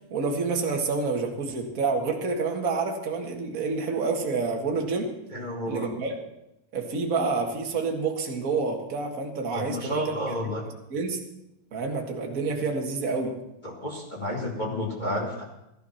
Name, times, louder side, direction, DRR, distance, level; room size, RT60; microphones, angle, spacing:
voice 1, 0.1-5.1 5.7-6.1 6.7-10.1 10.6-11.2 11.7-13.4, right 4 dB, 40° right, 1 dB, 1.2 m, -28 dB
voice 2, 5.3-5.9 9.5-10.7 13.6-15.4, left 1 dB, 30° left, -2 dB, 0.8 m, -31 dB
16.0 x 11.5 x 5.8 m, 0.87 s
omnidirectional pair, 4.2 m